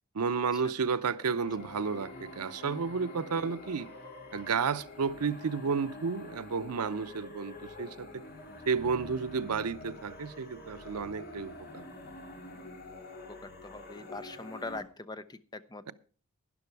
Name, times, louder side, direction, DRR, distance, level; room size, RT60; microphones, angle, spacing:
voice 1, 0.1-3.9 4.3-8.2 8.7-11.9 15.9-16.0, right 5 dB, 85° right, 0.7 m, -32 dB
sound 1, 1.2-14.8, left 1 dB, 45° left, 2.2 m, -47 dB
voice 2, 13.3-15.9, left 3 dB, 20° left, 0.6 m, -42 dB
12.0 x 11.0 x 4.7 m
head